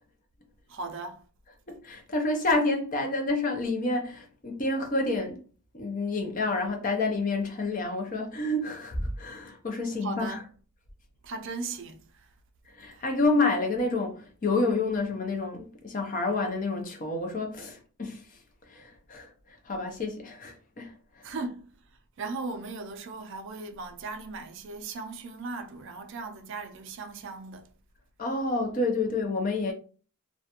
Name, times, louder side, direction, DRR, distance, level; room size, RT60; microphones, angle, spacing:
voice 1, 0.7-1.2 10.0-10.5 11.2-12.0 12.9-13.1 21.2-21.7 22.2-27.7, right 3 dB, 55° right, 0.4 m, -37 dB
voice 2, 1.7-5.4 5.7-10.4 12.7-18.2 18.7-21.3 28.2-29.7, left 2 dB, 35° left, 0.5 m, -29 dB
2.4 x 2.1 x 2.8 m
head